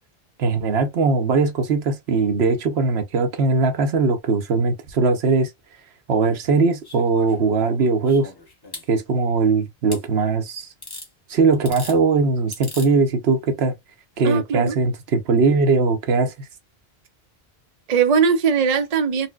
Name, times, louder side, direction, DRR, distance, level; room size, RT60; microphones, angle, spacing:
voice 1, 0.4-5.5 6.1-8.3 8.9-10.7 11.3-13.7 14.2-16.5, right 4 dB, 75° right, 0.9 m, -20 dB
sound 1, 6.8-8.9 9.9-10.0 10.8-11.1 11.5-12.0 12.5-12.9 14.1-14.2, left 2 dB, 20° left, 1.0 m, -38 dB
voice 2, 14.2-14.7 17.9-19.3, right 6 dB, 45° right, 0.6 m, -19 dB
4.1 x 2.1 x 2.3 m
omnidirectional pair, 1.1 m